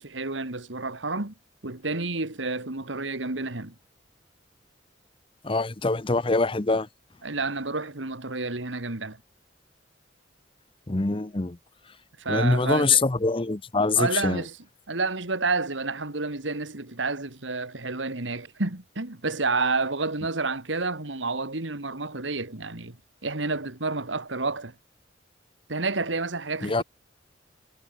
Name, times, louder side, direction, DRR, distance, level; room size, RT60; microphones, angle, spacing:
voice 1, 0.0-1.3 1.6-3.7 7.2-9.2 12.2-13.0 14.0-14.6 14.9-24.7 25.7-26.8, right 3 dB, 80° right, 2.3 m, -30 dB
voice 2, 5.4-6.9 10.9-11.6 12.3-14.4 26.6-26.8, left 3 dB, 30° left, 0.8 m, -24 dB
head